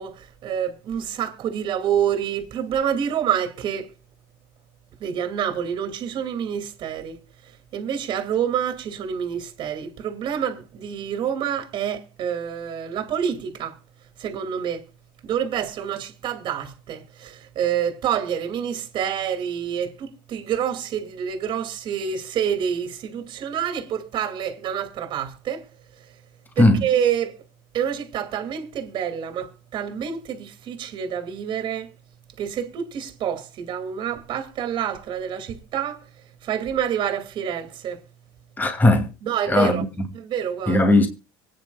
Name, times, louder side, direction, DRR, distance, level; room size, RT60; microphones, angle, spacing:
voice 1, 0.0-3.9 5.0-13.8 14.2-14.8 15.2-25.7 26.6-27.4 27.7-31.9 32.4-36.1 36.4-38.0 39.2-39.8 40.1-40.8, right 8 dB, 50° right, 2.4 m, -27 dB
voice 2, 38.6-39.1 39.5-39.8 40.7-41.1, left 2 dB, 15° left, 2.5 m, -17 dB
24.5 x 9.5 x 2.3 m
supercardioid pair, 120°, 10 cm